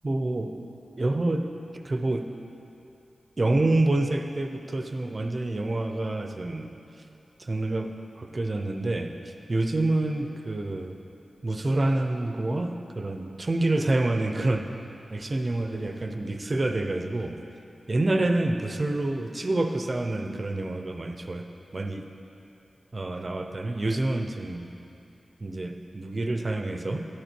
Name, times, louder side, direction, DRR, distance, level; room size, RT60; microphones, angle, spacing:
voice 1, 0.0-0.5 1.0-1.5 1.8-2.3 3.4-6.7 7.4-11.0 11.4-14.7 15.1-17.4 17.9-21.5 21.7-22.1 22.9-24.7 25.4-27.1, right 2 dB, 35° right, 6 dB, 0.6 m, -27 dB
10.5 x 8.1 x 4.5 m, 2.8 s
wide cardioid pair, 100°, 0 cm